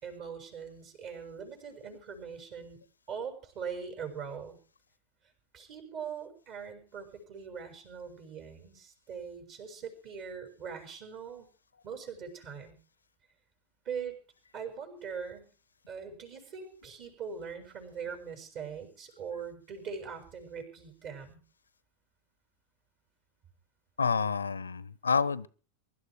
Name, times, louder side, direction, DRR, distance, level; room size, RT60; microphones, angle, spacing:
voice 1, 0.0-2.8 3.1-4.6 5.5-11.5 11.8-12.8 13.8-14.2 14.5-15.5 15.9-21.4, right 6 dB, 40° right, 6.7 m, -41 dB
voice 2, 24.0-25.5, left 5 dB, 75° left, 0.9 m, -28 dB
23.0 x 13.0 x 4.8 m
figure-of-eight pair, 90°, 0 cm